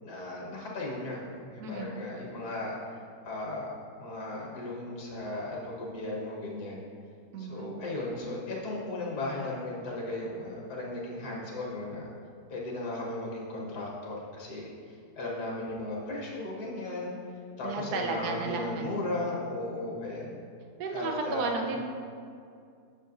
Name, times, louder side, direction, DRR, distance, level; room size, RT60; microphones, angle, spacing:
voice 1, 0.0-2.8 3.2-3.7 4.0-6.8 7.4-12.1 12.5-17.1 17.6-20.4 20.9-21.8, left 2 dB, 65° left, -4 dB, 1.9 m, -36 dB
voice 2, 1.6-2.1 7.3-7.7 17.6-19.4 20.8-21.8, right 4 dB, 70° right, 2 dB, 1.3 m, -34 dB
9.8 x 6.9 x 2.6 m, 2.3 s
omnidirectional pair, 1.8 m